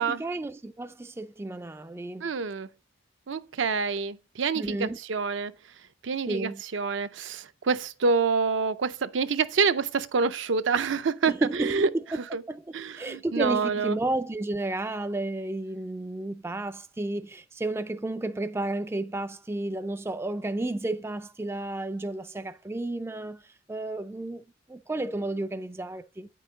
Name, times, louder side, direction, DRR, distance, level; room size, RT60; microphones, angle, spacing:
voice 1, 0.0-2.3 4.5-5.0 6.3-6.6 11.3-12.2 12.5-26.3, right 2 dB, 15° right, 0.3 m, -32 dB
voice 2, 2.2-2.7 3.3-5.5 6.0-11.3 11.6-11.9 12.3-12.4 12.7-14.0, right 5 dB, 65° right, 0.5 m, -27 dB
9.1 x 5.4 x 3.9 m
head